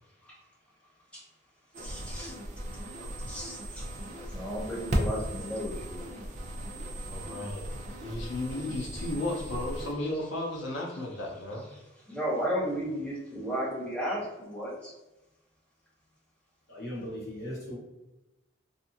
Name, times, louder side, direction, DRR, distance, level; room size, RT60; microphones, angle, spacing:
sound 1, 1.7-9.9, right 1 dB, 35° right, 0.4 m, -36 dB
voice 1, 1.8-2.4 3.2-6.0 9.3-9.4 9.7-10.2 10.8-14.9, equal, 5° left, -7 dB, 0.8 m, -35 dB
voice 2, 7.1-11.7, left 1 dB, 80° left, -2 dB, 0.6 m, -34 dB
voice 3, 16.7-17.8, equal, 55° left, -5 dB, 1.0 m, -38 dB
2.6 x 2.4 x 2.7 m, 0.99 s
head